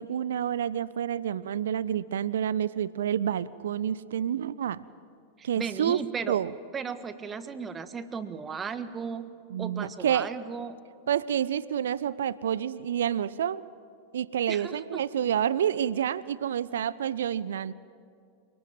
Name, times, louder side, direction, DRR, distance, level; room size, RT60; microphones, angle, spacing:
voice 1, 0.0-4.8 5.4-6.0 6.3-6.5 9.5-10.3 11.1-13.6 14.1-17.7, right 9 dB, 60° right, 20 dB, 0.6 m, -28 dB
voice 2, 5.4-6.4 6.7-9.3 9.6-10.8 14.5-15.0, right 6 dB, 20° right, 12 dB, 1.6 m, -36 dB
29.0 x 21.0 x 9.0 m, 2.4 s
figure-of-eight pair, 90°, 0 cm